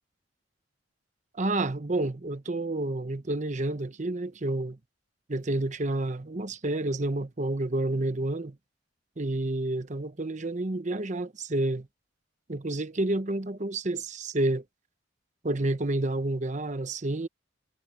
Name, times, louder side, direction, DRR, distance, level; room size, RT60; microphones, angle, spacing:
voice 1, 1.3-4.8 5.3-8.6 9.2-11.9 12.5-14.6 15.4-17.3, right 2 dB, 40° right, 1.0 m, -29 dB
head